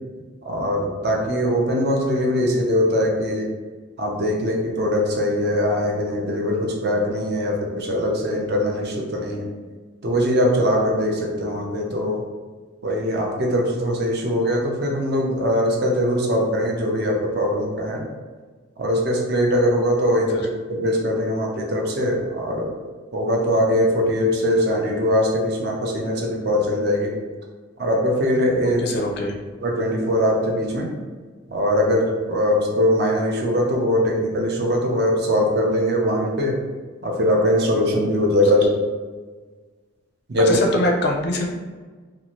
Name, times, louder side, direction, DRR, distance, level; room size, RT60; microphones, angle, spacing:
voice 1, 0.4-3.5 4.0-9.4 10.0-12.2 12.8-18.0 18.8-22.7 23.1-27.1 27.8-28.8 29.6-30.9 31.5-36.6 37.0-38.8 40.3-40.6, equal, 50° right, 0 dB, 0.5 m, -21 dB
voice 2, 28.8-29.4 40.5-41.5, left 1 dB, 50° left, 0 dB, 0.4 m, -23 dB
2.6 x 2.5 x 3.0 m, 1.4 s
head